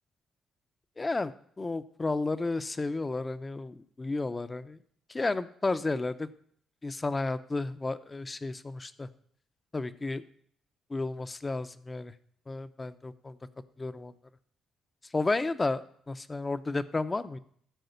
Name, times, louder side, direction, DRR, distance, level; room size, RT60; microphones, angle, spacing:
voice 1, 1.0-1.3 1.6-4.8 5.1-6.3 6.8-9.1 9.7-10.2 10.9-12.1 12.5-13.4 13.8-14.1 15.1-17.4, left 3 dB, 25° left, 13 dB, 0.7 m, -32 dB
13.5 x 4.8 x 8.1 m, 0.63 s
cardioid pair, 90°, 0 cm